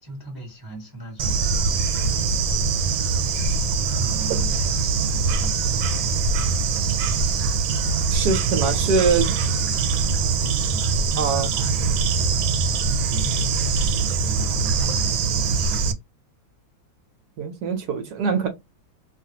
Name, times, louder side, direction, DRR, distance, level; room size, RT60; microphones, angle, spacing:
voice 1, 0.0-2.3 3.9-5.6 8.6-15.9, right 2 dB, 20° right, 0.7 m, -39 dB
Bird / Insect, 1.2-15.9, right 4 dB, 85° right, 1.3 m, -22 dB
voice 2, 8.1-9.3 11.2-11.5 17.4-18.5, right 5 dB, 70° right, 1.0 m, -23 dB
2.9 x 2.5 x 2.8 m
omnidirectional pair, 2.1 m